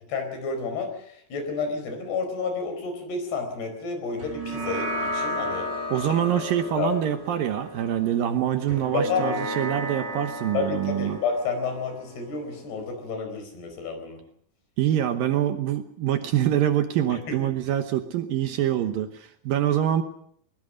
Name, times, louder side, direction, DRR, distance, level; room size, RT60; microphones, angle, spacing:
voice 1, 0.1-5.7 6.8-6.9 8.9-9.3 10.5-14.2 17.1-17.4, left 4 dB, 70° left, 6 dB, 6.5 m, -30 dB
sound 1, 4.2-12.9, equal, 25° right, 7.7 m, -34 dB
voice 2, 5.9-11.2 14.8-20.0, right 11 dB, 70° right, 8 dB, 2.5 m, -25 dB
22.0 x 21.0 x 6.5 m, 0.65 s
omnidirectional pair, 4.9 m